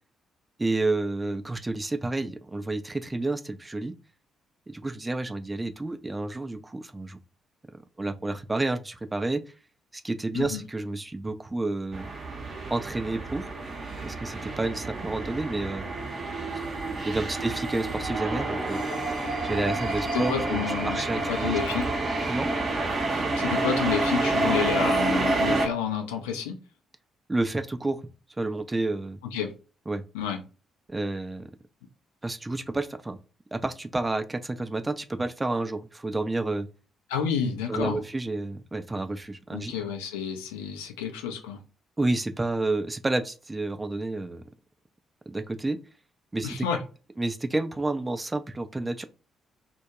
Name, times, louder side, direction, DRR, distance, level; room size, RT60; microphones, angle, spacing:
voice 1, 0.6-4.0 4.7-7.2 7.7-9.4 10.0-12.1 12.7-13.4 14.0-15.9 17.0-18.8 19.4-21.8 22.3-22.5 27.3-28.0 28.4-29.2 29.9-30.0 30.9-31.5 32.2-33.2 33.5-36.7 37.7-39.7 42.0-44.4 45.3-45.8 46.3-46.7 47.2-49.0, right 2 dB, 20° right, 0.3 m, -30 dB
sound 1, 11.9-25.7, right 2 dB, 45° right, 0.7 m, -28 dB
voice 2, 20.1-21.9 23.1-26.6 29.3-29.5 30.1-30.4 37.1-38.0 39.5-41.6 46.4-46.8, left 7 dB, 75° left, 0.4 m, -30 dB
2.2 x 2.1 x 2.7 m
figure-of-eight pair, 40°, 0 cm